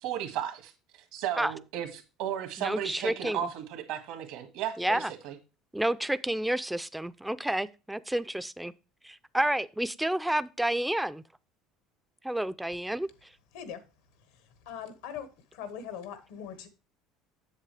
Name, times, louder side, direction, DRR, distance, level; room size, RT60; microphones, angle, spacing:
voice 1, 0.0-0.7 1.1-5.3, right 10 dB, 75° right, 1.6 m, -34 dB
voice 2, 2.6-3.4 4.8-5.1 5.7-8.7 9.0-11.2 12.2-13.1, right 1 dB, 5° right, 0.4 m, -30 dB
voice 3, 14.6-16.7, left 8 dB, 90° left, 1.4 m, -41 dB
7.5 x 7.5 x 3.2 m
supercardioid pair, 120°, 0 cm